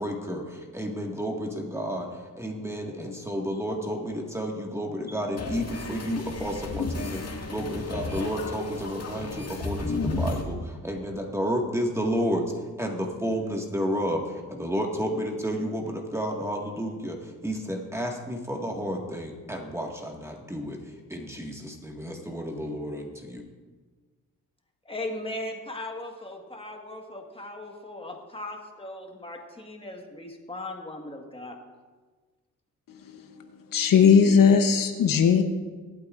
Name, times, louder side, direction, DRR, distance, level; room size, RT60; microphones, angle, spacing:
voice 1, 0.0-2.1 2.4-12.4 12.8-20.8 21.1-23.4, equal, 10° right, 0 dB, 1.8 m, -31 dB
sound 1, 5.4-10.4, left 2 dB, 45° left, 2.0 m, -33 dB
voice 2, 24.9-31.6, left 1 dB, 15° left, 2 dB, 1.6 m, -38 dB
voice 3, 33.7-35.4, left 6 dB, 65° left, 6 dB, 0.9 m, -18 dB
23.5 x 8.5 x 2.5 m, 1.4 s
cardioid pair, 85°, 35 cm